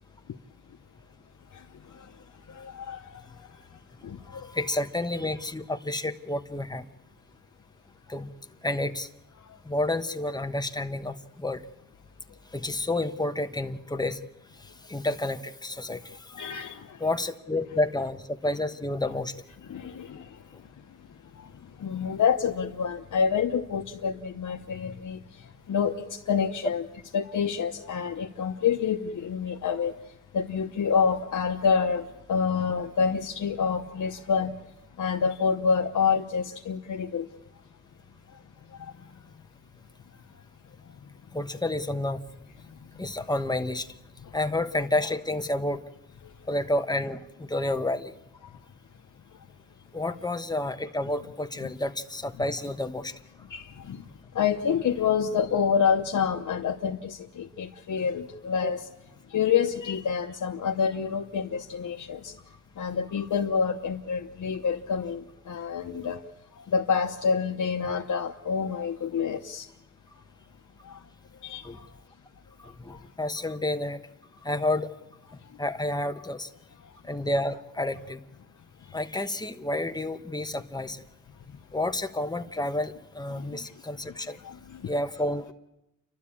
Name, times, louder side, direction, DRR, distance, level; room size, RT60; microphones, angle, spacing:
voice 1, 2.5-3.5 4.0-4.5 16.3-17.0 19.7-20.4 21.8-26.9 27.1-29.9 30.3-34.5 35.0-37.3 44.2-44.3 47.6-47.7 48.4-48.5 51.6-51.7 53.5-54.0 54.3-58.9 59.3-62.3 62.8-66.2 66.5-69.7 70.9-71.0 71.4-71.8 72.9-73.0 83.3-83.6 84.4-84.9, left 6 dB, 80° left, 1.0 m, -28 dB
voice 2, 4.3-6.9 8.1-8.3 8.6-9.1 9.6-11.6 12.5-14.2 14.9-16.2 17.0-19.4 41.3-42.2 43.0-43.9 44.3-45.8 46.5-48.1 49.9-53.1 58.6-58.7 71.6-71.8 72.6-74.0 74.4-75.0 75.6-76.5 77.1-78.2 78.9-81.0 81.7-84.4 84.9-85.5, left 1 dB, 15° left, 1.2 m, -30 dB
29.5 x 12.5 x 8.7 m
wide cardioid pair, 90°, 30 cm